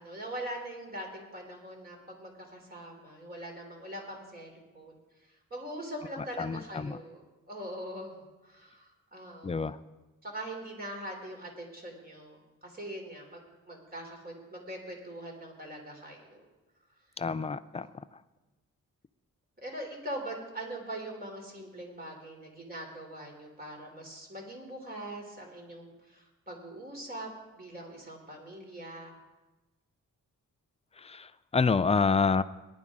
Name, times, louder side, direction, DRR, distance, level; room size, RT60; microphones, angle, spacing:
voice 1, 0.0-5.0 5.5-7.2 7.5-9.7 10.2-16.5 19.6-27.3 27.6-29.1, right 1 dB, 30° right, 1 dB, 3.4 m, -42 dB
voice 2, 6.4-7.0 9.4-9.8 17.2-17.9 31.0-32.4, left 4 dB, 20° left, 13 dB, 0.4 m, -28 dB
19.0 x 11.0 x 3.7 m, 1.1 s
wide cardioid pair, 120°, 33 cm